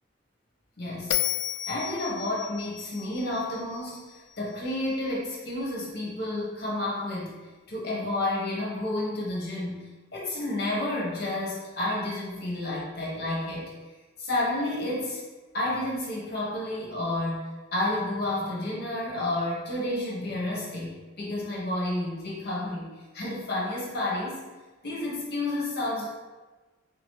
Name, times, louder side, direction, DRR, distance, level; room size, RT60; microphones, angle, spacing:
voice 1, 0.8-1.2 1.7-7.4 7.7-13.7 14.2-15.2 15.5-22.9 23.1-24.4 24.8-26.1, left 1 dB, 55° left, -5 dB, 1.2 m, -30 dB
Bell, 1.1-4.4, left 11 dB, 85° left, 0.3 m, -33 dB
3.5 x 3.1 x 3.1 m, 1.2 s
head